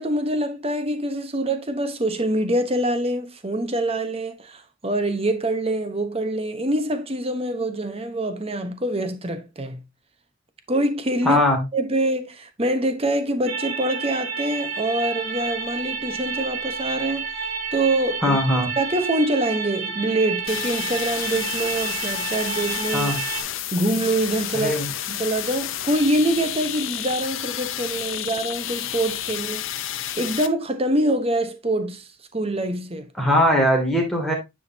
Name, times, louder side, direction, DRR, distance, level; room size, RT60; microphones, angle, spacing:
voice 1, 0.0-9.8 10.7-11.4 11.7-18.4 18.8-23.1 23.7-24.7 25.1-29.6 30.2-32.0 32.3-33.1, right 1 dB, 30° right, 1.0 m, -25 dB
voice 2, 11.2-11.6 18.2-18.7 22.9-23.2 24.5-24.9 33.2-34.3, left 1 dB, ahead, 2.5 m, -20 dB
sound 1, 13.5-23.4, right 5 dB, 90° right, 3.3 m, -30 dB
sound 2, 20.5-30.5, left 12 dB, 70° left, 0.7 m, -30 dB
9.8 x 5.0 x 2.8 m
head